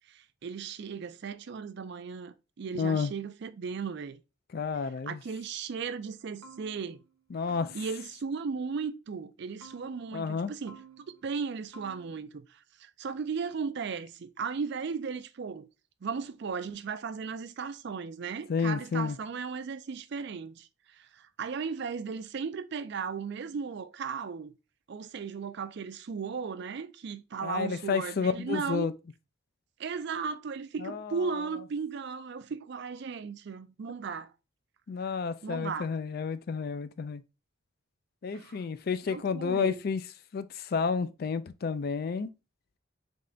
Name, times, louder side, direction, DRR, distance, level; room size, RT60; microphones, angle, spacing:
voice 1, 0.1-4.2 5.1-7.0 7.7-10.8 11.2-15.7 16.0-24.5 24.9-28.9 29.8-34.3 35.4-35.9 38.3-38.6 39.1-39.8, right 5 dB, 55° right, 0.4 m, -36 dB
voice 2, 2.8-3.1 4.5-5.2 7.3-7.8 10.1-10.5 18.5-19.2 27.4-28.9 30.8-31.2 34.9-37.2 38.2-40.0 40.3-42.3, left 5 dB, 50° left, 0.3 m, -31 dB
sound 1, 6.4-7.1 7.5-8.2 9.6-10.3 10.7-11.4 11.7-12.2, right 4 dB, 80° right, 0.7 m, -53 dB
3.6 x 3.3 x 3.8 m
head